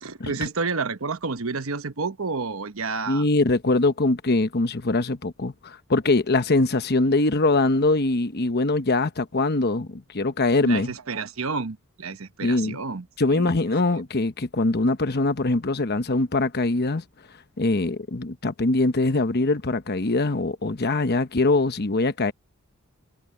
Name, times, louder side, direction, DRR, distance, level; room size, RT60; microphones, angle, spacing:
voice 1, 0.0-3.2 10.6-13.1 13.3-13.5, right 4 dB, 65° right, 1.1 m, -30 dB
voice 2, 3.1-10.9 12.4-12.8 13.2-17.0 17.6-22.3, left 2 dB, 45° left, 1.0 m, -22 dB
head